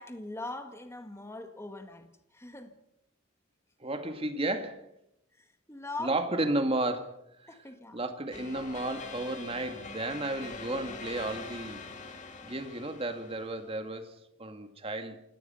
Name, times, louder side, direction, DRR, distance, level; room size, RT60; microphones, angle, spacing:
voice 1, 0.0-2.7 5.4-6.1 7.5-8.0, left 2 dB, 15° left, 7 dB, 1.9 m, -41 dB
voice 2, 3.8-4.9 6.0-7.2 7.9-11.8 12.4-15.2, right 2 dB, 30° right, 7 dB, 2.1 m, -33 dB
sound 1, 8.3-13.8, left 4 dB, 40° left, 2.5 m, -44 dB
28.0 x 18.5 x 5.7 m, 0.79 s
head